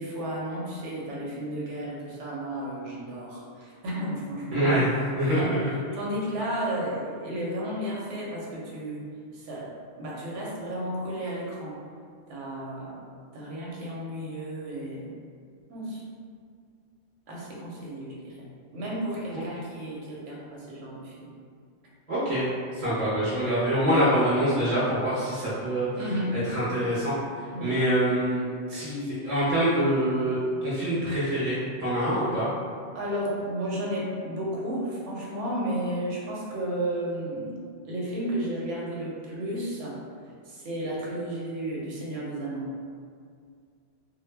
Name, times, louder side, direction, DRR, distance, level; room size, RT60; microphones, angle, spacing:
voice 1, 0.0-4.8 5.2-5.5 5.9-9.0 9.3-11.8 12.3-13.0 13.3-15.2 15.7-16.0 17.3-18.5 18.7-21.3 26.0-26.4 27.5-27.7 32.9-40.0 40.5-42.7, right 1 dB, 85° right, -5 dB, 1.0 m, -33 dB
voice 2, 4.5-4.9 5.2-5.6 19.3-19.5 22.1-22.5 22.7-25.9 26.3-27.2 27.6-32.5, equal, 45° right, -10 dB, 0.5 m, -25 dB
2.1 x 2.0 x 3.2 m, 2.2 s
omnidirectional pair, 1.2 m